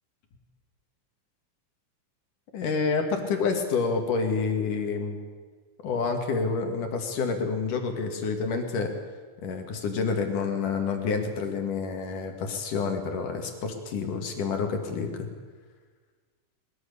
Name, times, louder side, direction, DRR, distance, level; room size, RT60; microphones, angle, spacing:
voice 1, 2.5-5.2 5.8-8.9 9.4-15.3, left 4 dB, 60° left, 4 dB, 3.5 m, -28 dB
22.0 x 21.0 x 6.9 m, 1.5 s
omnidirectional pair, 4.2 m